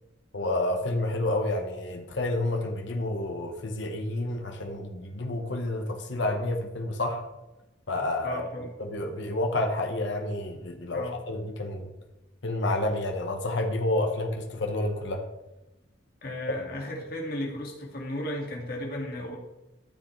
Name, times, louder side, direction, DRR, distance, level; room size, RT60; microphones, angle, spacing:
voice 1, 0.3-7.2 7.9-8.4 8.8-11.9 12.4-15.2, left 2 dB, 75° left, 3 dB, 1.2 m, -29 dB
voice 2, 8.2-8.7 10.9-11.2 16.2-19.4, left 1 dB, 50° left, -1 dB, 2.2 m, -34 dB
13.5 x 6.5 x 3.3 m, 1.0 s
head